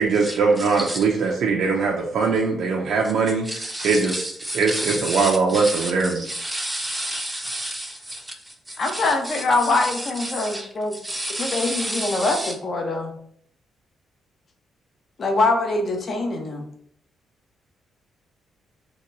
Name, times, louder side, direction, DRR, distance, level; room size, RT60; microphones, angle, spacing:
voice 1, 0.0-4.3 4.5-6.4 6.7-6.9, right 4 dB, 70° right, -1 dB, 0.5 m, -21 dB
voice 2, 3.5-5.9 6.3-8.2 8.7-9.1 9.3-9.4 9.8-9.9 10.2-10.7 11.0-12.5, right 1 dB, 15° right, 1 dB, 0.5 m, -30 dB
voice 3, 8.8-11.0 11.4-13.1 15.2-16.7, left 2 dB, 45° left, 3 dB, 0.7 m, -23 dB
2.9 x 2.2 x 3.8 m, 0.63 s
cardioid pair, 115°, 0 cm